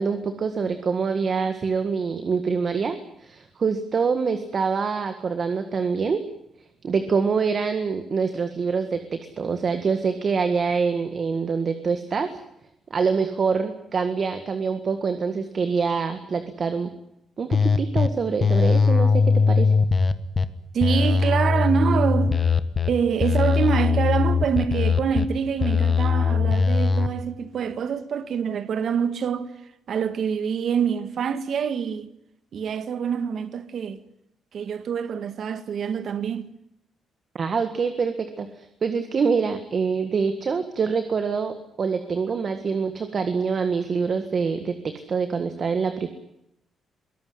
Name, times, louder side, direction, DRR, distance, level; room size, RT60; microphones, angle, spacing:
voice 1, 0.0-6.2 6.8-12.3 12.9-16.9 17.4-19.7 37.3-46.1, right 5 dB, 40° right, 1.8 m, -25 dB
sound 1, 17.5-18.1 18.4-20.4 20.8-22.9 23.2-25.2 25.6-27.1, left 5 dB, 30° left, 1.4 m, -20 dB
voice 2, 20.7-22.4 22.9-29.5 29.9-32.1 32.5-34.0 34.5-36.5, right 7 dB, 55° right, 1.7 m, -25 dB
23.0 x 18.0 x 9.6 m
cardioid pair, 135°, 0 cm